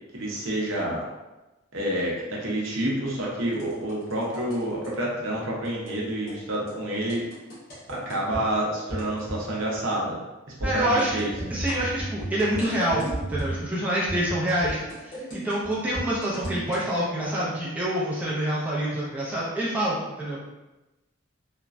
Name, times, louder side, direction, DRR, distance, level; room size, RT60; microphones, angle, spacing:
voice 1, 0.1-1.0 1.7-7.2 7.9-10.2 10.6-11.3, right 1 dB, 75° right, -4 dB, 0.7 m, -28 dB
sound 1, 3.5-5.0 5.6-6.0 6.3-6.4 6.7-6.8 7.1-8.5 8.9-9.5 9.7-10.0 10.6-13.7 14.1-16.8, right 1 dB, 50° left, 1.1 m, -35 dB
voice 2, 10.6-11.3 11.5-20.4, right 1 dB, 5° right, -7 dB, 0.4 m, -27 dB
3.1 x 2.2 x 2.4 m, 1.1 s
head